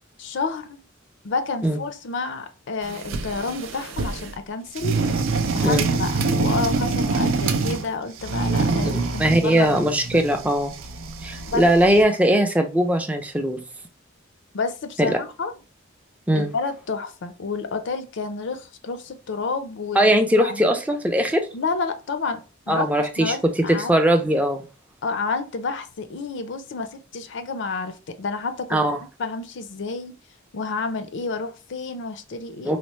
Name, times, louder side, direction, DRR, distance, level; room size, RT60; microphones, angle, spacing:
voice 1, 0.2-0.8 1.2-5.0 5.5-9.8 10.1-10.2 11.5-11.7 14.5-15.5 16.4-20.1 20.4-20.8 21.5-23.9 25.0-28.8 29.2-30.2 30.5-32.7, left 4 dB, 60° left, 0.5 m, -30 dB
sound 1, 2.8-4.4 4.8-7.9 8.2-12.0, right 3 dB, 80° right, 0.4 m, -25 dB
voice 2, 8.8-10.7 11.2-13.6 15.0-15.2 16.3-16.5 20.0-21.4 22.7-23.4 23.9-24.6 28.7-29.0 32.6-32.8, right 1 dB, 5° right, 0.4 m, -20 dB
4.1 x 2.0 x 3.0 m
head